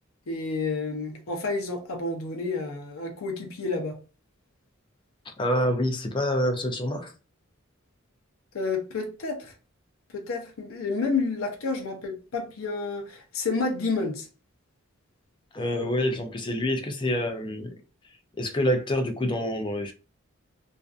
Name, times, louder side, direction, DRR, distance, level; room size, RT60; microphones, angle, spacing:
voice 1, 0.3-4.0 8.5-9.5 10.1-14.3, left 3 dB, 80° left, 0.6 m, -30 dB
voice 2, 5.3-7.1 15.5-17.7 18.4-19.9, left 1 dB, 25° left, 0.4 m, -27 dB
2.5 x 2.3 x 2.4 m
head